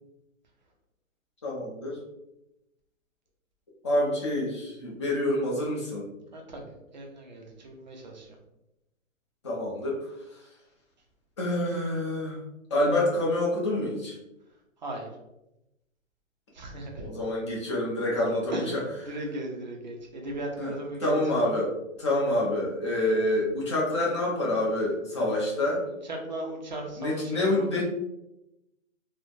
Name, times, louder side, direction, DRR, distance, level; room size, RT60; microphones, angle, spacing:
voice 1, 1.4-2.0 3.8-6.0 9.4-10.1 11.4-12.4 12.7-14.1 17.0-18.8 20.6-20.7 21.0-21.7 22.0-25.8 27.0-27.8, left 1 dB, 20° left, -4 dB, 0.5 m, -27 dB
voice 2, 6.3-6.6 6.9-8.3 14.8-15.1 16.5-17.1 18.5-18.7 19.1-21.2 26.1-27.8, right 1 dB, 35° right, 0 dB, 0.4 m, -37 dB
3.1 x 2.1 x 2.4 m, 0.90 s
hypercardioid pair, 150°, 40 cm